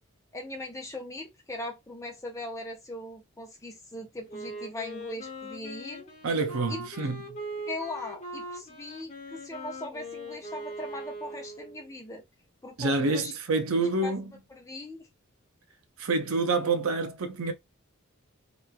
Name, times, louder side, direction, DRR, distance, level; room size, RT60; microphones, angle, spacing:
voice 1, 0.3-6.1 6.7-7.1 7.7-12.2 12.6-13.3 14.0-14.1 14.5-15.1, left 1 dB, 15° left, 0.7 m, -39 dB
Wind instrument woodwind instrument, 4.3-11.9, equal, 35° left, 1.0 m, -41 dB
voice 2, 6.2-7.4 12.8-14.3 16.0-17.5, right 3 dB, 85° right, 0.6 m, -27 dB
3.0 x 2.4 x 2.3 m
head